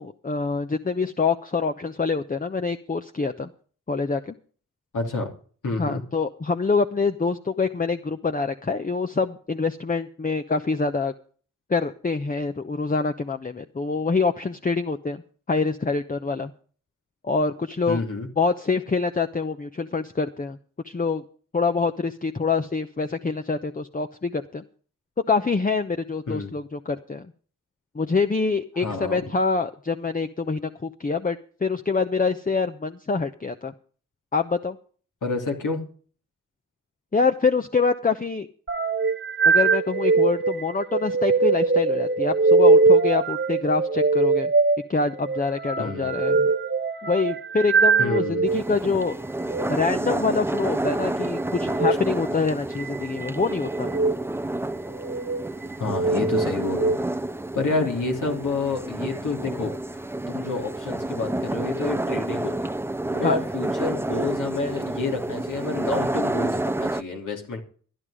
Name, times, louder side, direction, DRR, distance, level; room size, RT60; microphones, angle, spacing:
voice 1, 0.0-3.5 3.9-4.3 5.8-11.1 11.7-15.2 15.5-16.5 17.2-18.0 18.4-20.6 20.8-21.2 21.5-24.6 25.3-27.3 27.9-33.7 34.3-34.8 37.1-38.5 39.4-44.5 44.9-46.5 47.0-49.1 49.7-53.9 63.2-63.4, left 4 dB, 25° left, 7 dB, 0.9 m, -25 dB
voice 2, 4.9-5.3 5.6-6.0 17.9-18.3 26.3-26.5 28.8-29.2 35.2-35.8 45.8-46.1 48.0-48.5 55.8-57.0 57.5-59.7 60.3-62.7 63.1-67.6, left 3 dB, 75° left, 2 dB, 3.0 m, -29 dB
sound 1, 38.7-48.6 49.4-49.7 51.7-52.0 52.8-53.3 53.8-54.1 54.9-55.4 55.9-57.0, right 4 dB, 35° right, 1.4 m, -21 dB
sound 2, 48.5-67.0, right 1 dB, 10° right, 0.7 m, -29 dB
13.0 x 11.0 x 5.0 m, 0.43 s
cardioid pair, 60°, 32 cm